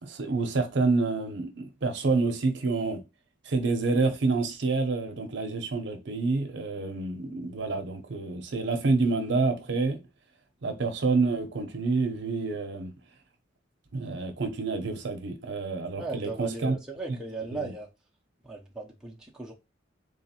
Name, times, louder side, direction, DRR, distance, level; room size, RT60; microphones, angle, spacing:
voice 1, 0.0-3.0 3.4-10.0 10.6-12.9 13.9-16.7 17.5-17.6, right 3 dB, 65° right, 0.7 m, -28 dB
voice 2, 15.9-17.9 18.4-19.5, right 3 dB, 5° right, 0.6 m, -37 dB
3.8 x 3.1 x 2.8 m
head